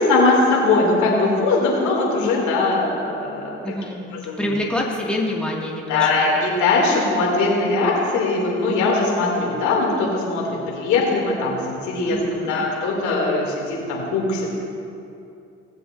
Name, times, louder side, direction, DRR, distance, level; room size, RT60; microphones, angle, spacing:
voice 1, 0.0-3.6 4.3-4.4 5.9-14.5, left 3 dB, 80° left, -3 dB, 2.6 m, -20 dB
voice 2, 3.6-4.0 4.4-6.3 12.0-12.7, left 1 dB, 5° left, -3 dB, 2.0 m, -26 dB
18.0 x 7.8 x 2.6 m, 2.6 s
supercardioid pair, 75°, 29 cm